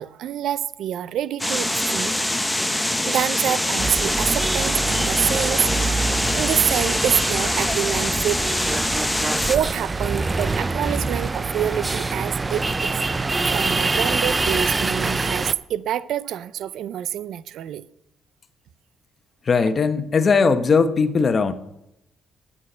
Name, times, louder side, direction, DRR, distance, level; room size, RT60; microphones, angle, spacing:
voice 1, 0.0-2.2 3.1-6.1 6.3-8.4 9.5-17.8, right 10 dB, 75° right, 0.5 m, -26 dB
sound 1, 1.4-9.6, left 1 dB, 5° left, 0.9 m, -24 dB
sound 2, 3.8-15.5, right 3 dB, 25° right, 0.4 m, -25 dB
voice 2, 19.4-21.5, left 5 dB, 40° left, 1.1 m, -19 dB
9.4 x 8.8 x 7.8 m
cardioid pair, 90°, 0 cm